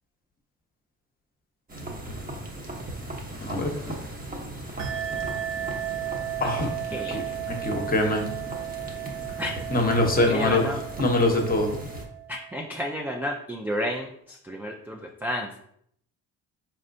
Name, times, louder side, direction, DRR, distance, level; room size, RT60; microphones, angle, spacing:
sound 1, 1.7-12.0, right 1 dB, 25° right, 0.9 m, -38 dB
sound 2, 4.8-12.9, right 12 dB, 70° right, 0.6 m, -35 dB
voice 1, 6.9-7.4 9.4-9.5 10.1-10.8 12.3-15.6, equal, 5° right, 1 dB, 0.4 m, -31 dB
voice 2, 7.5-8.3 9.7-10.6 11.0-11.8, left 2 dB, 25° left, 3 dB, 0.9 m, -23 dB
4.2 x 3.3 x 2.6 m, 0.69 s
supercardioid pair, 70°, 34 cm